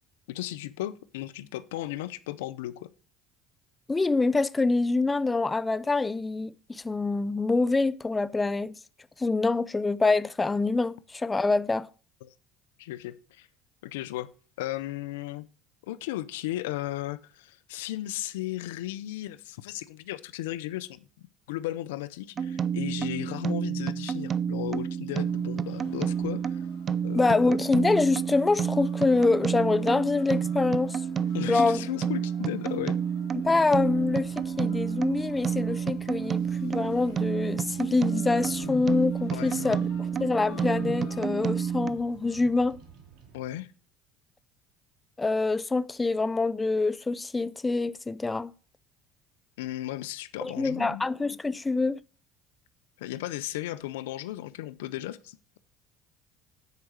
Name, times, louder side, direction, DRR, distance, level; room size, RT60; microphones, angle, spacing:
voice 1, 0.3-2.9 12.2-12.3 12.8-13.5 13.8-14.3 14.6-15.5 15.9-21.1 21.5-26.7 27.0-27.5 31.3-33.0 39.3-39.8 43.3-43.7 49.6-51.0 53.0-55.6, left 15 dB, 90° left, 0.4 m, -35 dB
voice 2, 3.9-8.8 9.2-11.9 27.1-31.0 31.5-31.9 33.3-42.8 45.2-48.5 50.4-52.0, left 3 dB, 20° left, 0.4 m, -25 dB
sound 1, 22.4-41.9, right 7 dB, 40° right, 0.5 m, -30 dB
sound 2, 25.1-43.0, left 4 dB, 70° left, 2.8 m, -48 dB
Bird vocalization bird call bird song, 33.7-43.5, right 6 dB, 70° right, 2.1 m, -54 dB
9.5 x 4.8 x 6.1 m
supercardioid pair, 90°, 0 cm